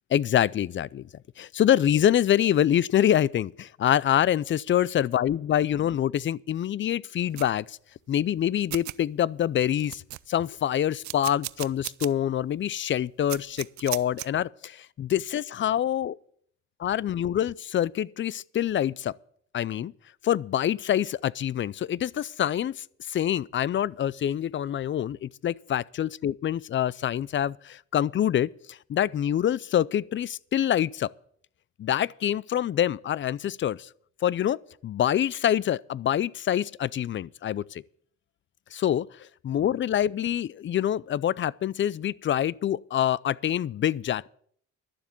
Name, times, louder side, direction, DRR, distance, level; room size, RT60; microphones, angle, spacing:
voice 1, 0.1-1.1 1.4-7.8 8.1-10.0 10.3-16.2 16.8-19.1 19.5-19.9 20.2-31.1 31.8-33.9 34.2-37.8 38.7-44.3, left 10 dB, 40° left, 0.4 m, -26 dB
sound 1, 7.4-7.5 8.4-8.5 8.7-9.0 9.4-9.5 9.8-10.5 11.0-12.1 12.5-12.6 13.3-14.3, right 16 dB, 70° right, 0.5 m, -35 dB
12.0 x 7.2 x 8.3 m
cardioid pair, 90°, 30 cm